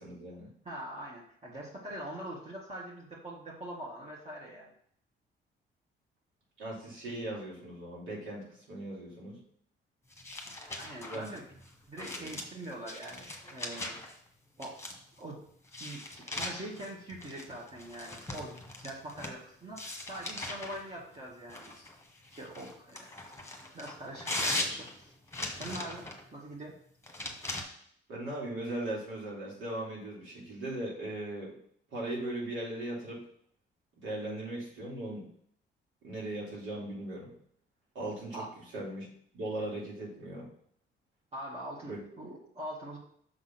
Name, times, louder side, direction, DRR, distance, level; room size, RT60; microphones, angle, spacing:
voice 1, 0.0-0.5 6.6-9.4 11.1-11.4 12.0-12.4 28.1-31.5 31.9-33.2 33.9-35.2 36.0-37.3 37.9-38.4 38.7-40.5 41.8-42.0, right 1 dB, 85° right, -5 dB, 3.0 m, -38 dB
voice 2, 0.6-4.7 10.4-11.4 11.9-14.0 14.6-14.7 15.2-15.4 15.8-21.9 22.3-23.1 23.7-25.1 25.6-26.1 26.3-26.7 38.3-38.5 41.3-43.0, right 1 dB, 30° right, -5 dB, 1.7 m, -43 dB
sound 1, 10.1-14.1 14.6-15.2 15.7-19.4 19.8-20.8 21.5-26.2 27.0-27.6, left 2 dB, 15° left, 1.5 m, -39 dB
6.4 x 3.6 x 5.8 m, 0.64 s
cardioid pair, 90°, 20 cm